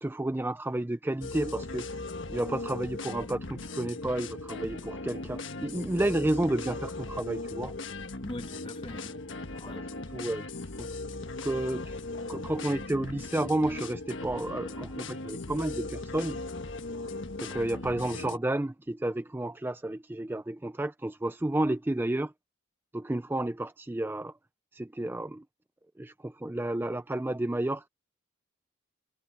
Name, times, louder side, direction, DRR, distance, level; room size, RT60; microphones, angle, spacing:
voice 1, 0.0-2.0 2.3-7.7 9.7-9.8 10.1-10.4 10.8-10.9 11.4-11.9 12.3-16.4 17.4-22.3 22.9-24.3 24.7-25.4 26.0-27.9, right 1 dB, 10° right, 0.4 m, -31 dB
sound 1, 1.2-18.4, left 2 dB, 60° left, 1.4 m, -38 dB
voice 2, 8.2-9.2 9.5-9.8, left 1 dB, 25° left, 1.4 m, -41 dB
head